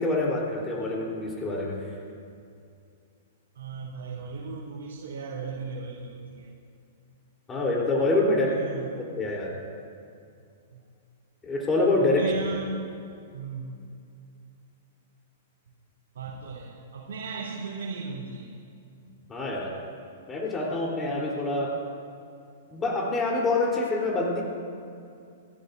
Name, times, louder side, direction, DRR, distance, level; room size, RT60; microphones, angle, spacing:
voice 1, 0.0-1.8 7.5-8.5 9.0-9.5 11.4-12.2 19.3-19.7 20.3-21.7 22.7-24.4, left 2 dB, 15° left, -3 dB, 3.7 m, -26 dB
voice 2, 3.5-6.5 8.4-8.9 10.7-10.8 12.0-12.7 13.3-13.7 16.1-18.5, right 4 dB, 80° right, -6 dB, 3.2 m, -36 dB
29.5 x 13.5 x 2.7 m, 2.4 s
hypercardioid pair, 145°, 0 cm